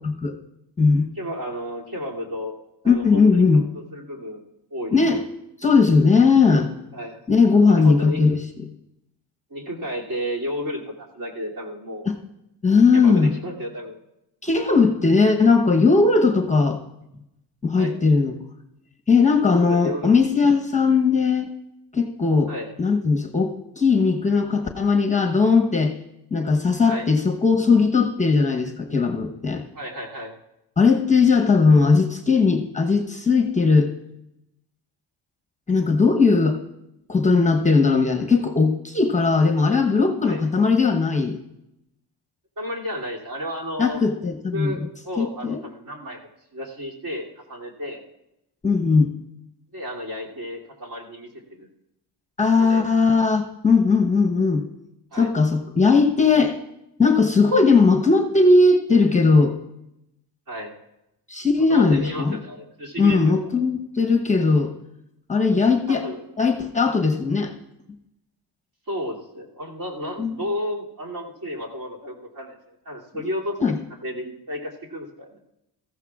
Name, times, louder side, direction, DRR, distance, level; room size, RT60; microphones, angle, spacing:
voice 1, 0.0-0.3 0.8-1.1 2.8-3.6 4.9-5.2 5.6-6.7 7.3-8.4 12.1-12.2 12.6-13.3 14.4-16.8 17.6-18.3 19.1-21.5 21.9-22.5 22.8-25.9 26.3-29.6 30.8-33.9 35.7-36.6 37.1-41.4 43.8-44.7 45.2-45.6 48.6-49.1 52.4-54.7 55.2-56.6 57.0-59.5 61.3-62.4 63.0-64.7 65.3-66.0 66.4-67.5 70.2-70.4 73.6-73.8, left 4 dB, 20° left, 3 dB, 1.0 m, -18 dB
voice 2, 1.1-2.6 2.8-4.4 4.7-5.2 6.4-6.6 6.9-7.2 7.6-8.4 9.5-12.0 12.9-14.0 17.8-18.0 19.7-20.6 22.5-22.7 26.8-27.1 29.7-30.4 40.2-40.5 42.6-44.0 44.5-48.0 49.7-51.7 52.5-52.9 55.1-55.3 60.5-60.7 61.6-63.6 65.9-66.2 68.9-73.6 74.0-75.4, equal, 50° right, -2 dB, 2.8 m, -33 dB
17.5 x 14.5 x 2.4 m, 0.86 s
cardioid pair, 100°, 41 cm